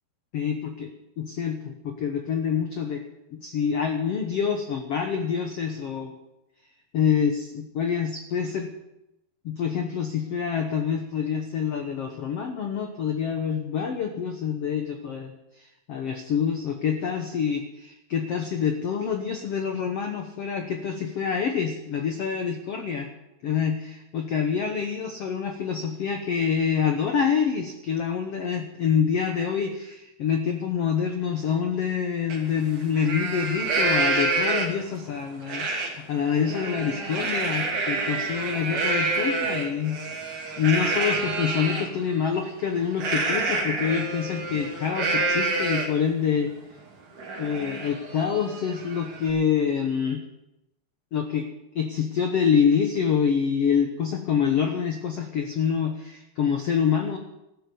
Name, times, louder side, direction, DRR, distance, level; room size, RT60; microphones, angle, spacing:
voice 1, 0.3-0.9 1.2-3.0 3.3-6.1 6.9-8.7 9.4-23.1 23.4-46.5 47.4-50.2 51.1-51.5 51.7-57.2, left 7 dB, 85° left, 5 dB, 1.3 m, -26 dB
Livestock farm animals working animals, 32.3-32.4 32.8-34.9 35.5-35.9 36.3-41.9 43.0-46.1 46.5-46.6 46.9-49.3, right 3 dB, 50° right, 3.9 m, -28 dB
14.5 x 12.0 x 6.9 m, 0.89 s
omnidirectional pair, 4.6 m